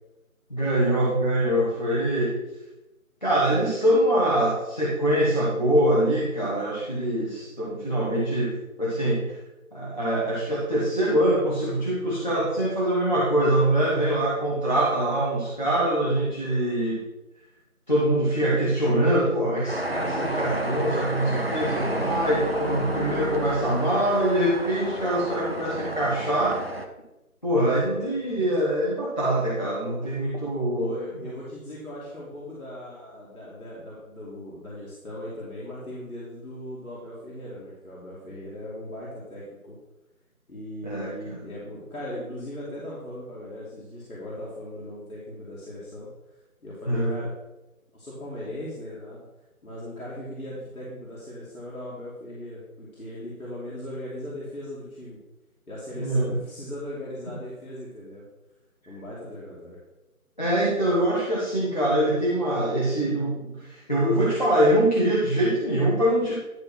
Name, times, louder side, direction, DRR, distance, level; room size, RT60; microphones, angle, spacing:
voice 1, 0.5-2.4 3.2-9.4 9.7-17.0 17.9-26.7 27.4-30.9 40.8-41.4 46.9-47.2 56.0-56.4 60.4-66.4, right 1 dB, 30° left, -6 dB, 1.3 m, -24 dB
sound 1, 19.7-26.9, right 1 dB, 45° right, 0.7 m, -31 dB
voice 2, 30.8-39.8 40.5-46.1 46.6-47.3 47.9-49.3 49.6-55.2 55.7-58.2 58.9-59.8, left 1 dB, 70° left, -7 dB, 2.8 m, -38 dB
11.0 x 3.7 x 6.0 m, 0.99 s
figure-of-eight pair, 175°, 44 cm